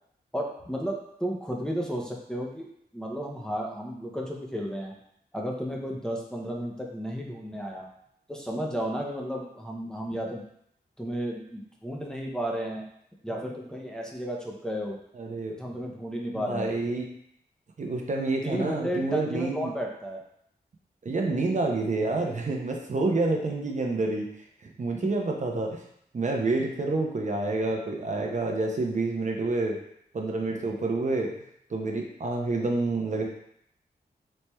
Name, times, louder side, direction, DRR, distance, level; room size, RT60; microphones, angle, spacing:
voice 1, 0.3-2.7 2.9-4.9 5.3-7.9 8.3-10.4 11.0-12.9 13.2-15.0 15.6-16.7 18.4-20.2, equal, 5° left, -2 dB, 0.5 m, -33 dB
voice 2, 15.2-15.5 16.3-17.1 17.8-19.7 21.0-24.3 24.6-25.8 26.1-29.8 30.1-31.3 31.7-33.2, right 3 dB, 45° right, 1 dB, 0.5 m, -28 dB
4.2 x 3.1 x 2.2 m, 0.72 s
wide cardioid pair, 100°, 17 cm